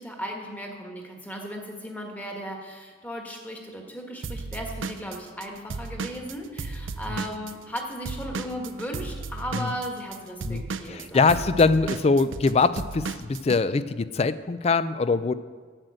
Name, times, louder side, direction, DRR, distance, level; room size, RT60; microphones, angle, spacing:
voice 1, 0.0-11.7, equal, 10° left, 1 dB, 1.4 m, -36 dB
Drum kit / Drum, 4.2-7.8 8.1-13.6, right 4 dB, 80° right, 0.6 m, -34 dB
voice 2, 10.9-15.3, left 4 dB, 35° left, 15 dB, 0.3 m, -23 dB
9.1 x 7.7 x 7.7 m, 1.5 s
head